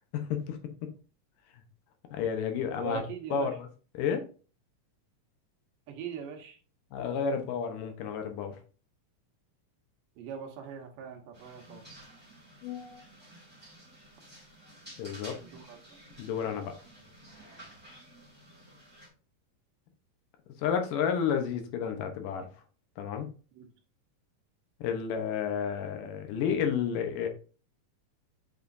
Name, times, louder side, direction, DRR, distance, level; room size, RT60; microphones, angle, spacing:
voice 1, 0.1-0.6 2.1-3.0 3.3-3.7 3.9-4.3 6.9-8.6 12.6-13.0 15.0-15.4 16.2-16.7 20.6-22.5 23.0-23.3 24.8-27.3, left 7 dB, 80° left, 6 dB, 2.6 m, -31 dB
voice 2, 2.7-3.5 5.9-6.6 10.2-11.8 15.4-15.8 23.5-23.7, right 7 dB, 85° right, 2 dB, 2.9 m, -41 dB
sound 1, 11.3-19.1, right 1 dB, 5° right, 2.7 m, -52 dB
8.0 x 4.9 x 2.6 m, 0.38 s
omnidirectional pair, 3.7 m